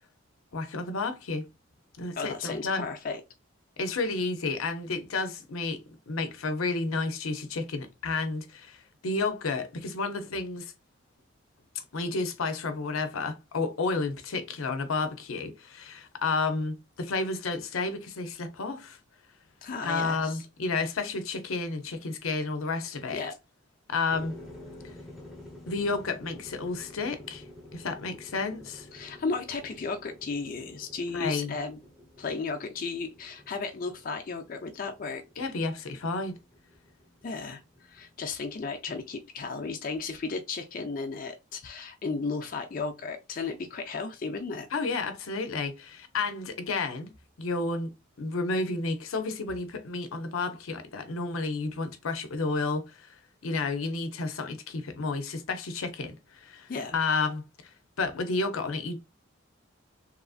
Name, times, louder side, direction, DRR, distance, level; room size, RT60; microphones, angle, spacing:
voice 1, 0.5-1.4 2.0-2.9 3.8-5.8 6.1-10.7 11.7-19.0 19.8-23.2 23.9-24.3 25.7-27.4 27.7-28.9 31.1-31.6 35.4-36.4 44.7-47.1 47.4-47.9 48.2-53.2 53.4-57.4 58.0-59.0, left 3 dB, 85° left, 0.6 m, -31 dB
voice 2, 2.2-3.2 19.6-20.4 23.1-23.3 28.9-31.8 32.2-35.5 37.2-44.7 56.7-56.9, left 4 dB, 45° left, 0.4 m, -34 dB
sound 1, 24.1-38.6, left 1 dB, ahead, 0.8 m, -50 dB
2.9 x 2.5 x 2.3 m
head